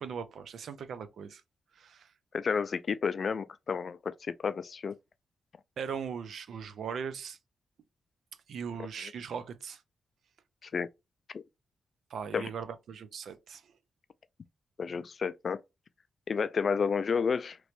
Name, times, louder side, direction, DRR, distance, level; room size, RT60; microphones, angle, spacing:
voice 1, 0.0-1.4 1.7-2.1 5.8-7.4 8.5-9.8 12.1-13.6, right 6 dB, 75° right, 0.5 m, -39 dB
voice 2, 2.3-5.0 8.8-9.1 10.6-10.9 11.3-11.4 12.3-12.5 14.8-15.6 16.3-17.6, left 5 dB, 55° left, 0.3 m, -31 dB
3.1 x 2.9 x 3.0 m
cardioid pair, 80°, 0 cm